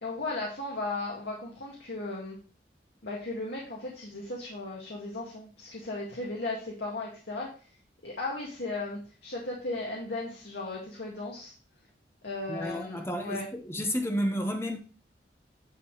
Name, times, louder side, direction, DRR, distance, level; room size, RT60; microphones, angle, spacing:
voice 1, 0.0-2.4 3.0-7.5 8.0-11.5 12.2-13.5, left 2 dB, 75° left, 2.2 m, -36 dB
voice 2, 12.5-14.8, equal, 15° left, 1.2 m, -31 dB
10.0 x 4.1 x 4.9 m
head